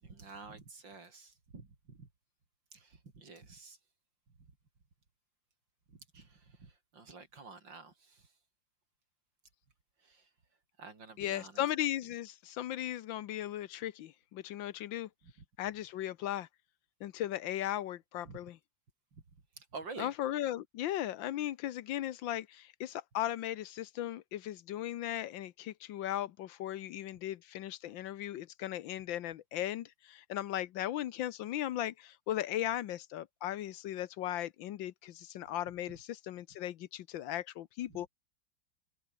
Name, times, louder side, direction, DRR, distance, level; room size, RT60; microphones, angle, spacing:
voice 1, 0.0-2.1 2.7-3.8 5.9-8.3 10.0-10.3 10.8-11.7 15.2-15.3 18.2-18.4 19.6-20.1 37.9-38.0, right 4 dB, 65° right, 4.5 m, -50 dB
voice 2, 11.2-15.1 15.6-16.5 17.0-18.6 20.0-38.1, left 12 dB, 80° left, 1.5 m, -37 dB
open air
omnidirectional pair, 2.1 m